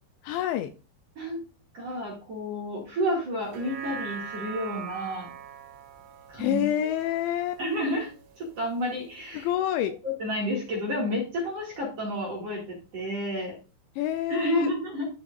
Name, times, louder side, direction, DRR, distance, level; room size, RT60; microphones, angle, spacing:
voice 1, 0.2-0.7 6.4-7.6 9.3-9.9 14.0-14.7, left 11 dB, 85° left, 9 dB, 2.7 m, -27 dB
voice 2, 1.7-5.3 6.3-6.6 7.6-9.5 10.0-13.6 14.3-15.1, equal, 45° right, -3 dB, 2.4 m, -30 dB
sound 1, 3.4-8.0 8.4-8.5, right 7 dB, 75° right, 3.7 m, -41 dB
13.0 x 6.0 x 2.5 m, 0.34 s
omnidirectional pair, 5.6 m